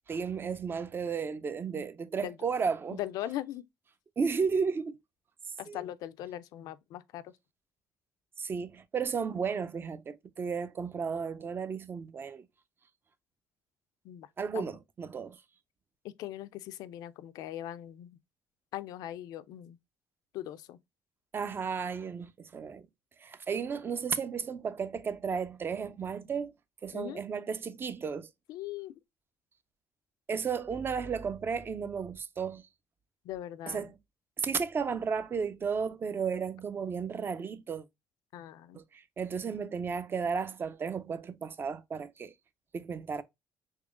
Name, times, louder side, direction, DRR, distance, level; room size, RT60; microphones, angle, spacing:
voice 1, 0.1-3.0 4.2-5.0 5.7-5.8 8.4-12.5 14.4-15.4 21.3-22.9 23.2-26.5 26.8-28.3 30.3-32.7 33.7-33.9 34.4-37.9 38.7-42.3 42.7-43.2, right 6 dB, 35° right, 0.4 m, -33 dB
voice 2, 2.9-3.6 5.6-7.3 14.0-14.3 14.5-14.7 16.0-18.2 18.7-19.8 20.3-20.8 26.9-27.2 28.5-28.9 33.2-33.9 38.3-38.8, left 13 dB, 80° left, 0.3 m, -40 dB
3.6 x 3.1 x 2.4 m
cardioid pair, 95°, 6 cm